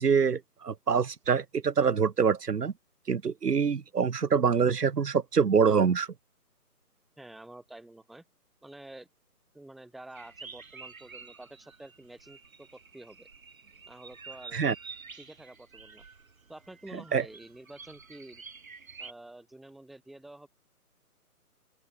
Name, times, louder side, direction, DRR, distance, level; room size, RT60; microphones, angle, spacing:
voice 1, 0.0-2.7 3.1-6.1 14.5-14.7 17.1-17.2, right 6 dB, 90° right, 1.4 m, -25 dB
voice 2, 7.2-8.2 8.6-9.1 9.5-13.3 13.9-14.6 15.2-16.0 16.5-18.4 19.0-20.5, right 1 dB, ahead, 1.5 m, -49 dB
sound 1, 10.1-19.1, right 4 dB, 60° right, 7.0 m, -49 dB
open air
hypercardioid pair, 170°, 46 cm